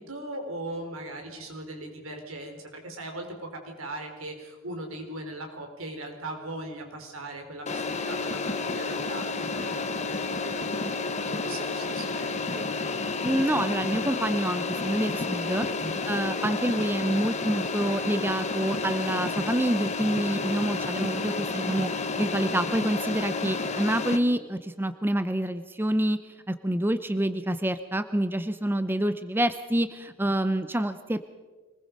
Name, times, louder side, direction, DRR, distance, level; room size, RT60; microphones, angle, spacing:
voice 1, 0.0-10.9 11.2-12.7 15.8-16.0 20.0-20.6 30.2-30.3, right 1 dB, 80° right, 4 dB, 4.4 m, -39 dB
sound 1, 7.7-24.2, left 3 dB, 35° left, 1.3 m, -30 dB
voice 2, 13.2-15.7 16.1-26.2 26.5-31.2, right 1 dB, 10° right, 11 dB, 0.6 m, -27 dB
25.0 x 20.5 x 5.3 m, 1.3 s
head